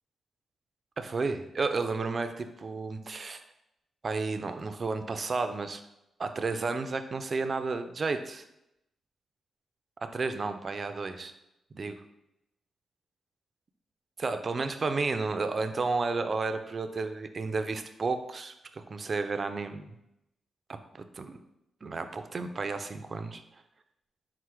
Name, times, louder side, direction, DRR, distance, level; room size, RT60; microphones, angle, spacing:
voice 1, 1.0-3.4 4.0-5.8 6.2-8.4 10.0-11.3 11.7-12.0 14.2-19.9 20.9-21.4 21.8-23.4, right 4 dB, 40° right, 8 dB, 0.4 m, -32 dB
4.7 x 2.0 x 4.5 m, 0.85 s
cardioid pair, 115°, 0 cm